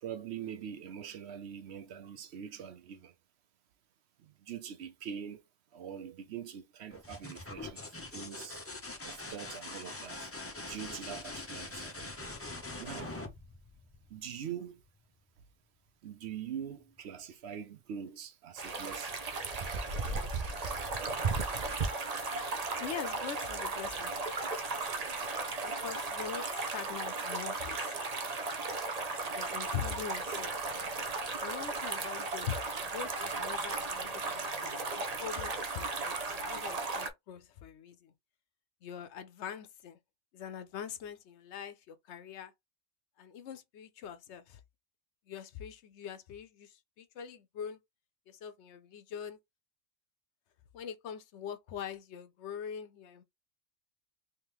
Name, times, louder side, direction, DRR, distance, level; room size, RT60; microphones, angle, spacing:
voice 1, 0.0-3.1 4.2-5.4 5.7-8.6 9.0-10.3 10.6-12.3 12.8-13.1 14.1-14.8 16.0-19.2, right 8 dB, 65° right, 0.8 m, -43 dB
sound 1, 6.9-14.5 16.3-16.8, left 2 dB, 20° left, 0.4 m, -43 dB
sound 2, 18.6-37.1, right 3 dB, 40° right, 0.6 m, -35 dB
voice 2, 22.8-24.1 25.6-26.5 26.7-27.9 29.3-30.7 31.4-38.1 38.8-40.0 40.3-42.5 43.2-44.6 45.3-47.8 48.3-49.4 50.7-53.2, left 8 dB, 70° left, 0.9 m, -43 dB
3.6 x 2.9 x 3.0 m
omnidirectional pair, 1.3 m